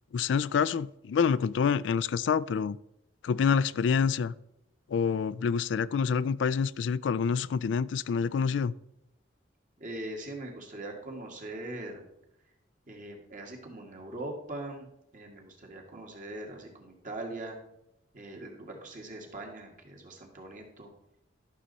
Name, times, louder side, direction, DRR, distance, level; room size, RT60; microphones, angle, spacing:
voice 1, 0.1-2.8 3.2-4.3 4.9-8.7, left 6 dB, 80° left, 18 dB, 0.3 m, -27 dB
voice 2, 9.8-12.1 12.9-14.9 15.1-17.6 18.1-20.9, right 1 dB, 45° right, 1 dB, 2.0 m, -41 dB
11.5 x 6.5 x 4.1 m, 0.83 s
head